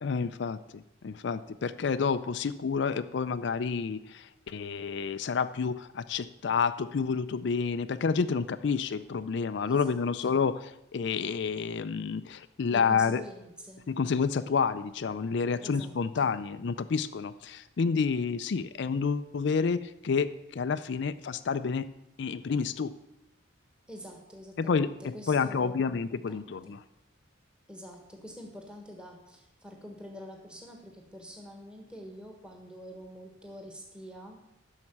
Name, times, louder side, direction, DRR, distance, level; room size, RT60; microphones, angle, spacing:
voice 1, 0.0-10.5 10.9-13.2 13.9-21.9 22.2-22.9 24.6-26.8, left 5 dB, 60° left, 12 dB, 0.4 m, -29 dB
voice 2, 9.5-10.4 12.7-13.8 15.5-16.3 23.9-26.7 27.7-34.4, equal, 5° right, 1 dB, 1.5 m, -46 dB
10.5 x 6.5 x 7.1 m, 0.86 s
head